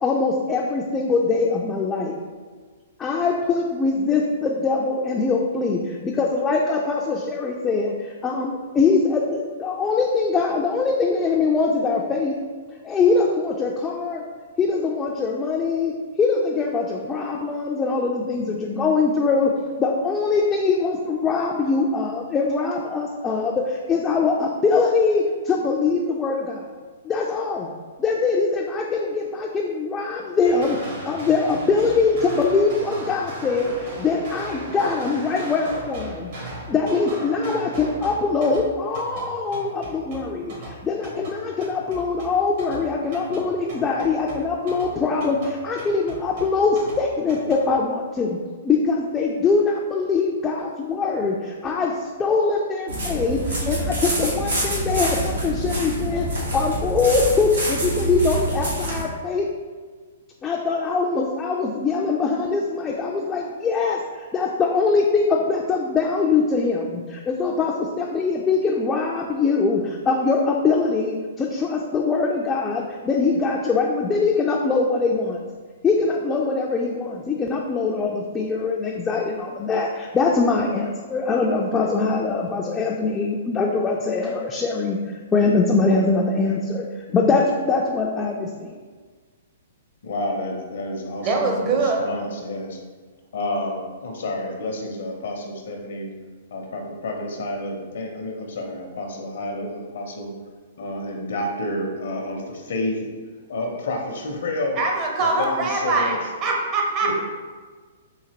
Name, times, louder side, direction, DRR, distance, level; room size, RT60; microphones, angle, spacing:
voice 1, 0.0-2.2 3.0-12.3 12.8-14.2 14.6-26.6 27.0-27.7 28.0-36.3 36.7-48.4 48.6-59.5 60.4-75.4 75.8-85.0 85.3-88.7, left 4 dB, 20° left, 0.3 m, -22 dB
sound 1, 30.4-47.6, right 1 dB, 60° right, 1.3 m, -38 dB
sound 2, 52.9-59.0, right 1 dB, 90° right, 1.3 m, -26 dB
voice 2, 90.0-92.8 93.3-96.1 96.5-100.3 100.8-103.2 103.5-104.8 105.2-106.2 107.0-107.1, left 1 dB, 70° left, 0.7 m, -29 dB
voice 3, 91.2-92.0 104.8-106.1 106.4-107.1, right 3 dB, 35° right, 0.7 m, -22 dB
3.8 x 2.8 x 2.8 m
hypercardioid pair, 130°, 0 cm